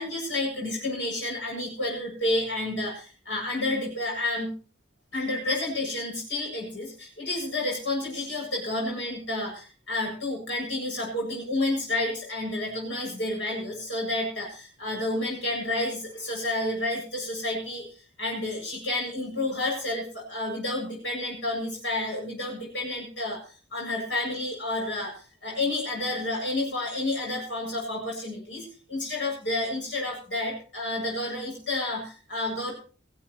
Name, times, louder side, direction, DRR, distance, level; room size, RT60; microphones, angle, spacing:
voice 1, 0.0-4.5 5.1-17.8 18.2-23.4 23.7-32.7, left 2 dB, 75° left, -2 dB, 7.8 m, -30 dB
20.0 x 15.5 x 3.2 m, 0.38 s
head